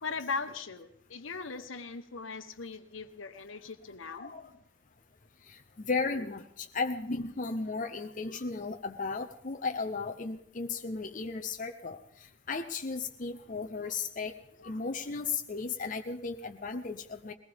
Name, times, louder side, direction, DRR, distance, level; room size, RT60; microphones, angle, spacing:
voice 1, 0.0-4.3, left 4 dB, 75° left, 9 dB, 1.1 m, -39 dB
voice 2, 4.1-4.5 5.4-17.3, left 4 dB, 40° left, 4 dB, 0.7 m, -35 dB
21.0 x 19.0 x 3.5 m, 0.70 s
head